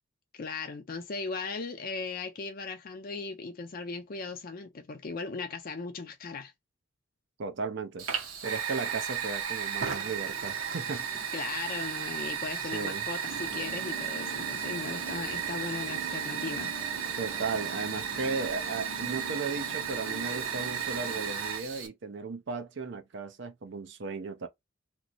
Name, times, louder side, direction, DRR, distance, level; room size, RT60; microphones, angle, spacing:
voice 1, 0.3-6.5 11.3-16.7, left 4 dB, 45° left, 0.5 m, -37 dB
voice 2, 7.4-8.1 8.4-11.1 12.7-13.0 17.2-24.5, right 4 dB, 60° right, 0.5 m, -36 dB
Fire, 8.0-21.9, right 7 dB, 90° right, 0.8 m, -34 dB
sound 1, 13.2-21.4, right 2 dB, 20° right, 0.8 m, -44 dB
3.0 x 2.0 x 3.8 m
head